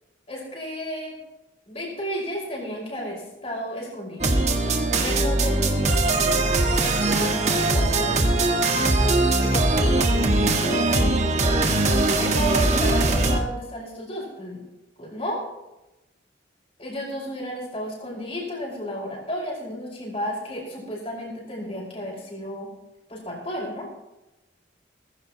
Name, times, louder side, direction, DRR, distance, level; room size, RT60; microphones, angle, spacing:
voice 1, 0.3-1.2 1.7-4.4 4.9-8.5 9.4-14.6 15.0-15.4 16.8-22.7 23.1-23.9, equal, 30° left, -3 dB, 5.4 m, -32 dB
sound 1, 4.2-13.4, right 2 dB, 35° right, 1.5 m, -21 dB
19.0 x 15.5 x 3.0 m, 0.96 s
head